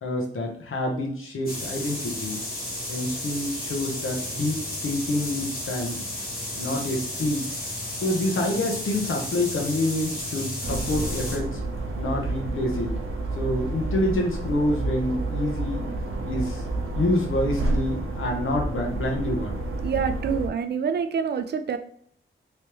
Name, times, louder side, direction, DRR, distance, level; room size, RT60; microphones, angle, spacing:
voice 1, 0.0-2.4 2.9-6.0 6.6-7.6 8.0-11.6 12.0-12.9 13.4-15.8 16.3-16.6 16.9-19.6, left 1 dB, 75° left, 0 dB, 1.0 m, -27 dB
sound 1, 1.5-11.4, left 1 dB, 45° left, 1.5 m, -33 dB
sound 2, 10.6-20.5, right 2 dB, 85° right, 0.7 m, -30 dB
voice 2, 19.8-21.8, right 6 dB, 55° right, 8 dB, 0.4 m, -26 dB
3.4 x 3.1 x 3.0 m, 0.62 s
wide cardioid pair, 165°, 21 cm